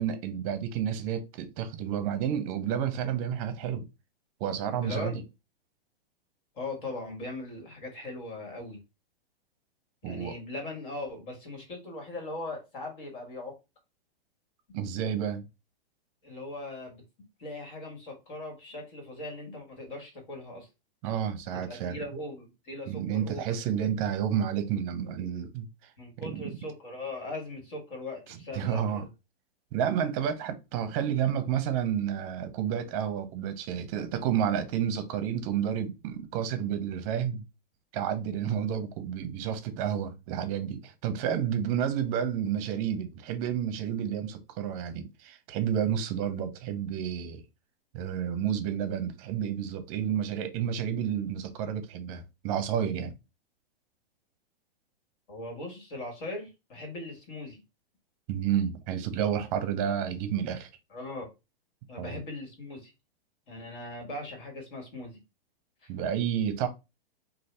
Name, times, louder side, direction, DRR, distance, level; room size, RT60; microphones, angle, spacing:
voice 1, 0.0-3.8 4.4-5.2 10.0-10.3 14.7-15.4 21.0-22.0 22.9-25.7 26.2-26.5 28.5-29.1 29.7-37.4 37.9-47.4 47.9-53.1 58.3-60.7 62.0-62.2 65.9-66.7, right 9 dB, 35° right, 0.6 m, -30 dB
voice 2, 4.8-5.2 6.5-8.8 10.0-13.6 16.2-17.0 17.4-20.7 21.5-23.6 26.0-29.1 55.3-57.6 60.9-61.3 61.9-62.9 63.5-65.2 65.8-65.9, left 2 dB, 55° left, 1.7 m, -39 dB
2.7 x 2.4 x 3.3 m
hypercardioid pair, 145°, 30 cm